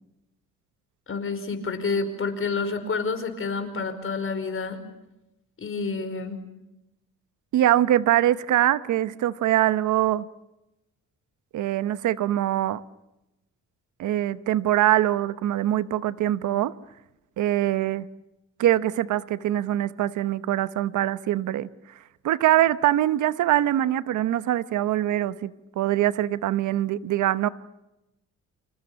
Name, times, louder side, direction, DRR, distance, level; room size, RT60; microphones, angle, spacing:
voice 1, 1.1-4.8 5.6-6.4, left 4 dB, 45° left, 5.2 m, -29 dB
voice 2, 7.5-10.2 11.5-12.8 14.0-16.7 17.4-18.1 18.6-21.7 22.2-27.5, right 13 dB, 75° right, 1.0 m, -23 dB
29.5 x 26.5 x 7.1 m
cardioid pair, 90°, 30 cm